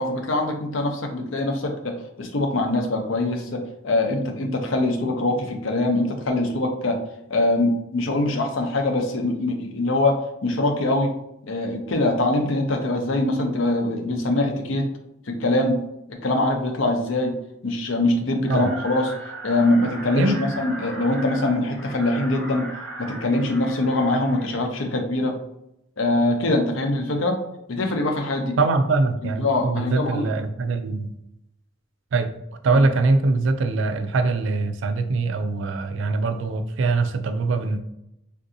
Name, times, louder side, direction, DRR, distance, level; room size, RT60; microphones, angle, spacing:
voice 1, 0.0-7.0 7.3-11.1 11.4-14.9 15.3-15.8 16.1-17.4 17.6-19.1 19.4-22.7 23.0-25.4 26.0-27.4 27.7-28.6 29.4-30.3, left 2 dB, 75° left, 3 dB, 0.6 m, -23 dB
sound 1, 18.5-24.7, right 1 dB, 10° left, 0.9 m, -38 dB
voice 2, 28.6-31.1 32.1-32.3 32.6-37.8, right 3 dB, 65° right, 7 dB, 0.4 m, -22 dB
3.5 x 2.6 x 2.6 m, 0.82 s
head